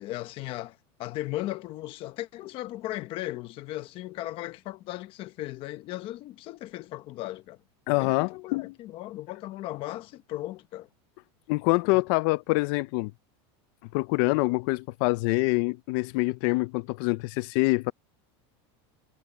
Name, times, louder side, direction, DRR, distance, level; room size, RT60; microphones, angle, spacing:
voice 1, 0.0-7.6 7.9-10.9 11.9-12.0, left 16 dB, 40° left, 1.0 m, -37 dB
voice 2, 7.9-8.7 11.5-13.1 13.9-17.9, left 25 dB, 55° left, 0.5 m, -25 dB
supercardioid pair, 160°, 14 cm